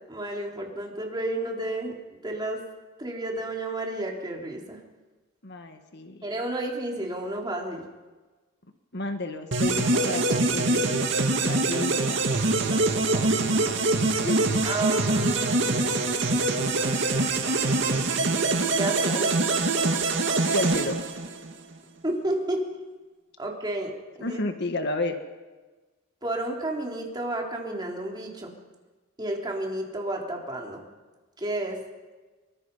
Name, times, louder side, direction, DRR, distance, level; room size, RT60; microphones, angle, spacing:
voice 1, 0.1-1.9 2.2-2.6 3.0-4.8 6.2-7.8 12.6-13.4 14.6-15.7 18.8-19.3 22.0-22.6 23.4-24.4 26.2-28.5 29.2-30.8 31.4-31.8, right 1 dB, 20° right, 0 dB, 3.8 m, -31 dB
voice 2, 5.4-6.2 8.9-11.1 11.4-12.2 14.0-14.6 20.5-21.0 24.2-25.2, left 2 dB, 55° left, 6 dB, 1.7 m, -31 dB
sound 1, 9.5-21.6, right 2 dB, 60° right, 2.4 m, -24 dB
25.5 x 23.5 x 5.6 m, 1.3 s
head